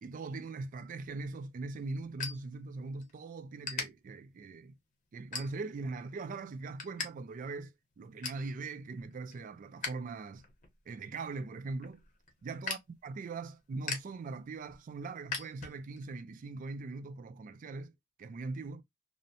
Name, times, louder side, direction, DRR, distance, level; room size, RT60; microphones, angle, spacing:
voice 1, 0.0-4.7 5.1-10.4 10.9-12.0 12.4-17.9 18.2-18.8, right 3 dB, 40° right, 0.3 m, -41 dB
sound 1, 1.1-3.1 3.4-3.9 4.4-4.7 5.2-5.9 6.3-7.1 7.4-7.5 7.8-8.5 8.9-9.9 10.3-16.1, left 5 dB, 40° left, 0.7 m, -41 dB
2.6 x 2.0 x 2.7 m
head